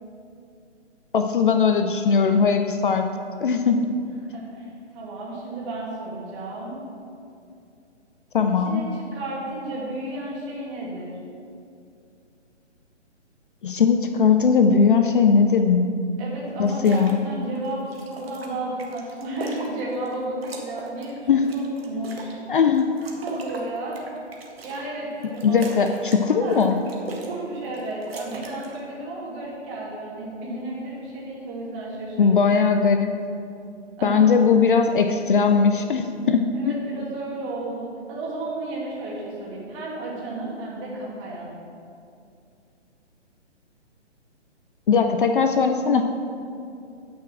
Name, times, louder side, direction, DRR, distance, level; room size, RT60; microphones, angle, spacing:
voice 1, 1.1-3.1 3.4-3.8 8.3-8.9 13.6-15.9 16.6-17.2 21.3-21.5 22.5-22.9 25.4-26.8 32.2-33.1 34.0-36.7 44.9-46.0, left 5 dB, 45° left, 6 dB, 0.6 m, -19 dB
voice 2, 4.0-6.8 8.6-11.2 16.2-22.4 23.2-24.1 24.6-26.7 27.1-32.5 34.0-34.3 36.5-41.5, right 2 dB, 25° right, -5 dB, 2.5 m, -33 dB
sound 1, 16.7-17.2 17.6-20.1 20.4-22.4 22.7-24.9 25.2-26.2 26.5-27.4 27.6-28.8, right 3 dB, 55° right, 1.7 m, -39 dB
9.4 x 6.1 x 6.1 m, 2.5 s
figure-of-eight pair, 140°, 36 cm